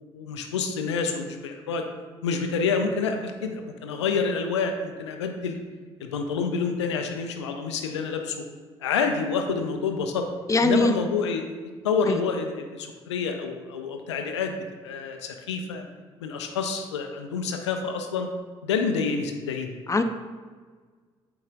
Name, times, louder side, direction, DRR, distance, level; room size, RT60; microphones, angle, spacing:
voice 1, 0.1-1.8 2.2-5.6 6.0-8.4 8.8-10.3 10.6-11.4 11.8-14.5 14.8-15.9 16.2-18.3 18.6-19.8, left 5 dB, 85° left, 5 dB, 0.5 m, -28 dB
voice 2, 10.5-10.9 12.1-12.2 19.9-20.0, left 2 dB, 20° left, 8 dB, 0.5 m, -20 dB
8.0 x 4.8 x 2.5 m, 1.5 s
hypercardioid pair, 45°, 14 cm